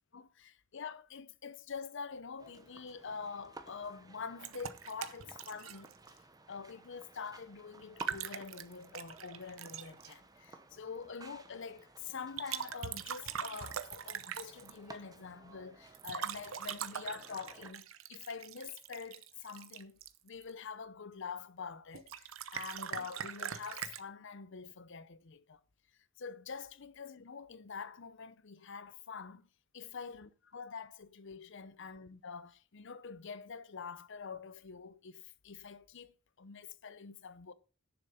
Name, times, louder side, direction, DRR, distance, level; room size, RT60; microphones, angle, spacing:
voice 1, 0.1-6.2 6.5-25.6 26.2-29.5 29.7-36.1 36.4-37.5, left 5 dB, 65° left, 0.7 m, -46 dB
sound 1, 2.4-17.7, right 3 dB, 20° right, 1.0 m, -55 dB
sound 2, 4.4-6.2 7.8-10.1 12.4-14.8 15.9-20.5 21.9-24.0, right 8 dB, 85° right, 0.8 m, -42 dB
10.0 x 7.1 x 5.6 m
head